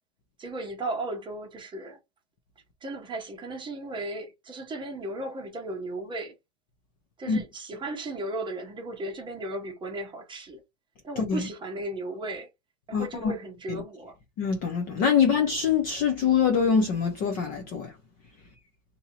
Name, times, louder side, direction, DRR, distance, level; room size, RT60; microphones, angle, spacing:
voice 1, 0.4-2.0 2.8-6.3 7.2-10.6 11.0-12.5 12.9-14.2 15.1-15.2, right 2 dB, 10° right, 0.8 m, -35 dB
voice 2, 12.9-13.3 14.4-17.9, left 6 dB, 25° left, 0.5 m, -24 dB
2.8 x 2.7 x 4.0 m
supercardioid pair, 145°, 40 cm